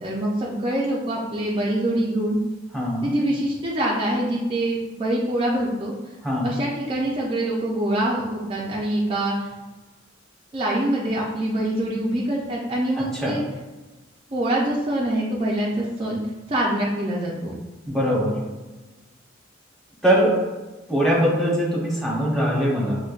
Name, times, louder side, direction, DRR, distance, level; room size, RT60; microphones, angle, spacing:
voice 1, 0.0-2.4 3.0-5.9 6.4-9.5 10.5-13.4 14.3-16.2 16.5-17.6, right 1 dB, 25° right, -4 dB, 0.4 m, -24 dB
voice 2, 2.7-3.1 6.2-6.5 13.1-13.3 17.9-18.4 20.0-20.4 20.9-23.0, equal, ahead, -6 dB, 0.9 m, -21 dB
5.1 x 2.1 x 2.4 m, 1.2 s
head